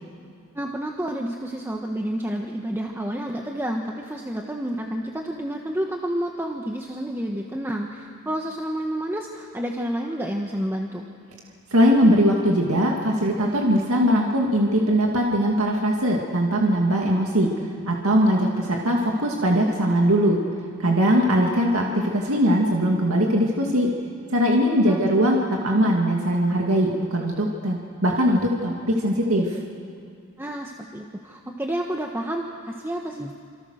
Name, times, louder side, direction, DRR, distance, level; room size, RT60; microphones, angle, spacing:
voice 1, 0.5-11.1 24.9-25.1 25.4-25.5 30.4-33.3, right 1 dB, 10° right, 1 dB, 1.3 m, -30 dB
voice 2, 11.7-17.5 17.9-20.4 20.8-23.9 24.3-25.4 25.6-29.6, equal, 70° right, 0 dB, 2.3 m, -20 dB
28.0 x 27.0 x 6.5 m, 2.4 s
head